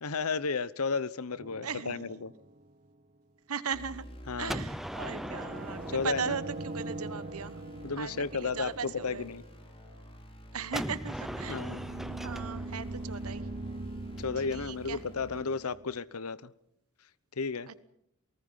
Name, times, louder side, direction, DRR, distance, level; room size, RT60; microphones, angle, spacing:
voice 1, 0.0-2.3 4.3-4.6 5.9-6.4 7.8-9.4 11.5-11.8 14.2-16.5 17.4-17.7, left 4 dB, 90° left, 18 dB, 0.9 m, -33 dB
sound 1, 1.4-2.9 5.1-9.5 11.0-16.0, right 2 dB, 40° right, 0.8 m, -42 dB
voice 2, 1.6-2.2 3.5-4.0 4.4-7.6 8.0-9.3 10.5-11.9 12.2-13.5 14.4-15.0 17.7-17.9, right 6 dB, 85° right, 14 dB, 1.2 m, -38 dB
sound 2, 3.7-15.4, equal, 25° left, 4.4 m, -51 dB
Gunshot gunfire, 4.5-7.3 10.7-14.5, equal, ahead, 0.8 m, -40 dB
28.5 x 19.0 x 5.6 m, 0.73 s
head